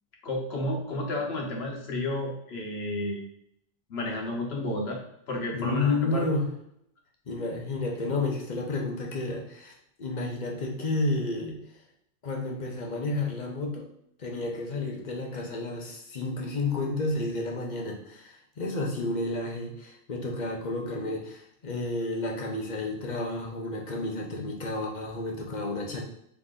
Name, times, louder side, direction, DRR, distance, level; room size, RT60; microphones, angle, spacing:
voice 1, 0.2-3.2 3.9-5.0 5.3-6.3, left 1 dB, 60° left, 0 dB, 1.2 m, -31 dB
voice 2, 5.5-6.5 7.3-9.7 10.0-11.6 12.2-13.9 14.2-26.0, left 2 dB, 40° left, 0 dB, 0.9 m, -31 dB
4.0 x 3.0 x 3.6 m, 0.75 s
omnidirectional pair, 1.2 m